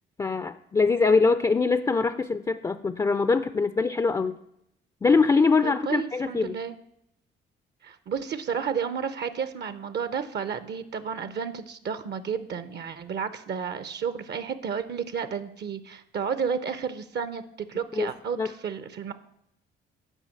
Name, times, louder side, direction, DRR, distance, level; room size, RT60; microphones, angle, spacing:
voice 1, 0.2-4.4 5.0-6.6 17.9-18.1 18.4-18.5, left 4 dB, 20° left, 12 dB, 0.4 m, -23 dB
voice 2, 5.6-6.7 7.8-17.4 17.7-19.1, right 6 dB, 55° right, 13 dB, 0.7 m, -32 dB
9.0 x 5.1 x 7.5 m, 0.78 s
cardioid pair, 90°, 20 cm